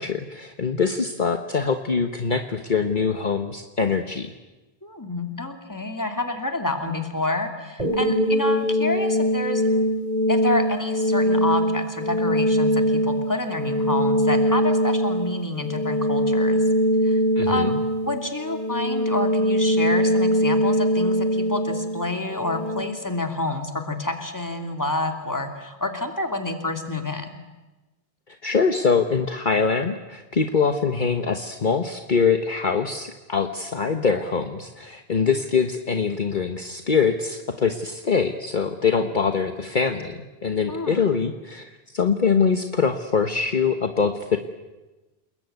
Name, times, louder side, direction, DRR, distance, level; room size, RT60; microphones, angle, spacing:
voice 1, 0.0-4.3 17.4-17.8 28.3-44.4, left 5 dB, 50° left, 6 dB, 1.4 m, -23 dB
voice 2, 4.8-9.7 10.3-16.6 17.0-17.2 17.5-17.8 18.0-27.3 40.7-41.0, left 2 dB, 20° left, 5 dB, 2.8 m, -28 dB
sound 1, 7.8-22.8, equal, 40° right, 4.3 m, -22 dB
29.0 x 21.0 x 9.4 m, 1.1 s
omnidirectional pair, 1.1 m